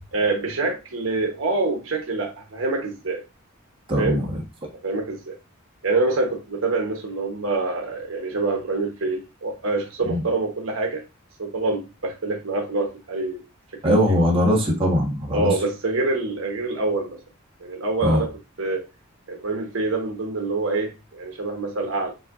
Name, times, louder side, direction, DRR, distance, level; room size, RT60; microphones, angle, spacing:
voice 1, 0.1-3.2 4.0-4.2 4.8-5.3 5.8-11.0 11.4-13.4 14.0-14.1 15.3-17.2 17.6-18.3 18.6-18.8 19.3-22.1, right 3 dB, 65° right, 1.0 m, -26 dB
voice 2, 3.9-4.4 10.0-10.2 13.8-15.5 18.0-18.2, equal, 25° right, 1.3 m, -20 dB
7.4 x 2.7 x 2.5 m
head